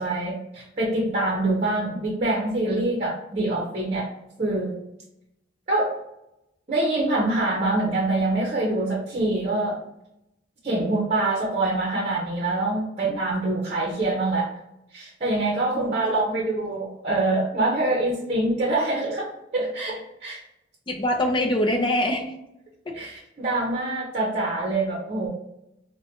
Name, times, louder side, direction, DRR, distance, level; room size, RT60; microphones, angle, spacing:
voice 1, 0.0-4.1 4.4-4.7 5.7-5.9 6.7-9.8 10.6-14.5 14.9-20.4 22.9-25.3, right 2 dB, 35° right, -3 dB, 0.8 m, -25 dB
voice 2, 15.7-16.4 20.9-22.3, left 1 dB, 25° left, 1 dB, 0.5 m, -25 dB
4.8 x 2.2 x 2.9 m, 0.84 s
head